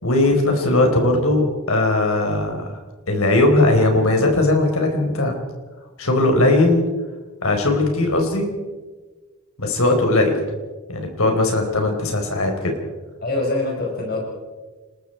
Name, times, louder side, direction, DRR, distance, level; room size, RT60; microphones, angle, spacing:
voice 1, 0.0-1.4 1.7-2.7 3.1-5.3 6.0-6.9 7.4-8.5 9.6-10.4 10.9-12.7, left 2 dB, 70° left, 3 dB, 4.5 m, -18 dB
voice 2, 13.2-14.2, left 2 dB, 45° left, 0 dB, 4.9 m, -24 dB
29.5 x 20.5 x 4.6 m, 1.3 s
head